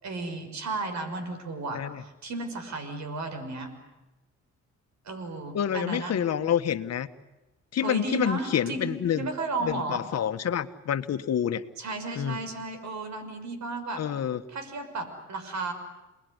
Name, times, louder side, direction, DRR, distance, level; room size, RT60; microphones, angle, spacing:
voice 1, 0.0-3.7 5.0-6.2 7.8-10.0 11.8-14.0 14.5-15.7, right 3 dB, 65° right, 8 dB, 6.2 m, -34 dB
voice 2, 5.5-7.1 7.7-9.3 9.6-11.6 12.1-12.4 14.0-14.4, left 9 dB, 55° left, 9 dB, 1.6 m, -28 dB
28.5 x 21.0 x 9.8 m, 1.0 s
cardioid pair, 90°, 30 cm